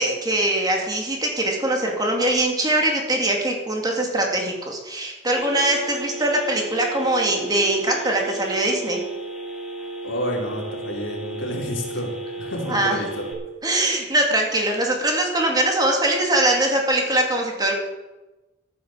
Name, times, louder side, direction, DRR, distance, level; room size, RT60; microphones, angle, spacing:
voice 1, 0.0-9.0 12.7-13.0 13.6-17.7, right 1 dB, 20° right, 0 dB, 2.5 m, -22 dB
Telephone, 5.4-13.3, right 3 dB, 5° right, 2.4 m, -34 dB
voice 2, 10.0-13.3, left 1 dB, 85° left, -1 dB, 3.9 m, -29 dB
12.5 x 9.5 x 7.3 m, 1.1 s
head